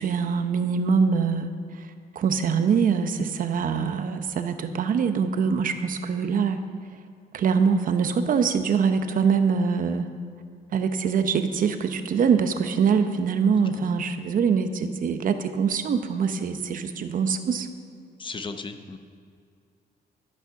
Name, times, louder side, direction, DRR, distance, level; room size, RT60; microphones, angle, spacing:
voice 1, 0.0-1.9 2.1-6.6 7.3-10.1 10.7-17.7, right 6 dB, 55° right, 9 dB, 0.8 m, -24 dB
voice 2, 18.2-19.0, left 4 dB, 30° left, 7 dB, 0.8 m, -36 dB
13.0 x 8.7 x 5.8 m, 2.3 s
cardioid pair, 135°, 17 cm